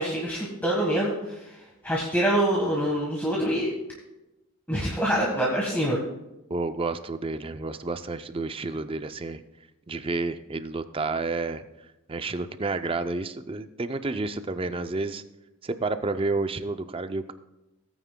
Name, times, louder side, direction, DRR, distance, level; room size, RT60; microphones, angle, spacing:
voice 1, 0.0-1.6 1.8-3.7 4.7-6.0, right 1 dB, 10° left, -4 dB, 1.4 m, -25 dB
voice 2, 6.5-9.4 9.9-11.7 12.1-15.2 15.6-17.3, right 3 dB, 25° right, 10 dB, 0.4 m, -30 dB
17.0 x 9.2 x 2.2 m, 0.97 s
head